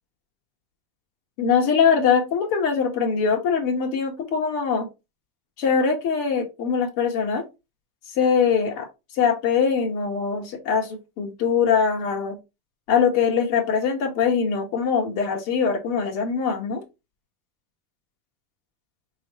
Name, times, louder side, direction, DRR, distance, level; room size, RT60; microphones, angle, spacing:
voice 1, 1.4-4.9 5.6-7.4 8.1-8.9 9.1-12.4 12.9-16.8, left 6 dB, 60° left, 1.4 m, -22 dB
3.7 x 3.2 x 3.0 m
supercardioid pair, 135°, 40 cm